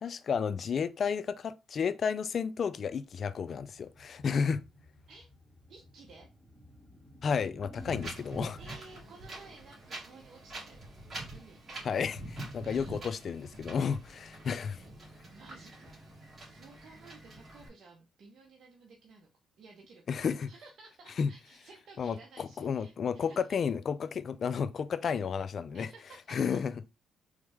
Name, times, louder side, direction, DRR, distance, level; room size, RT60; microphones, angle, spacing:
voice 1, 0.0-4.6 7.2-8.6 11.8-12.2 12.5-14.8 20.1-20.5 21.2-21.3 22.0-25.9 26.3-26.7, left 6 dB, 50° left, 0.3 m, -32 dB
sound 1, 2.9-8.2, equal, 5° right, 2.7 m, -54 dB
voice 2, 5.7-6.3 8.6-10.8 11.3-12.0 12.6-13.0 14.4-14.5 15.2-16.1 16.4-19.3 19.6-20.0 20.5-23.5 25.7-26.6, right 4 dB, 60° right, 0.9 m, -55 dB
Wind, 7.8-17.7, right 1 dB, 40° right, 2.4 m, -45 dB
4.0 x 3.2 x 3.5 m
cardioid pair, 90°, 0 cm